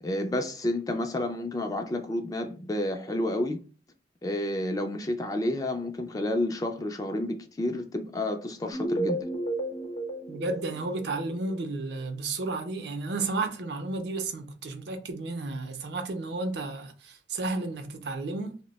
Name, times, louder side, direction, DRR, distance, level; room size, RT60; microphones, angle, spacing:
voice 1, 0.0-3.6 4.2-9.3, left 1 dB, 20° left, 0.3 m, -30 dB
sound 1, 8.7-11.7, right 1 dB, 60° left, 0.7 m, -33 dB
voice 2, 10.3-18.6, right 3 dB, 65° right, 0.5 m, -32 dB
2.7 x 2.1 x 3.9 m
head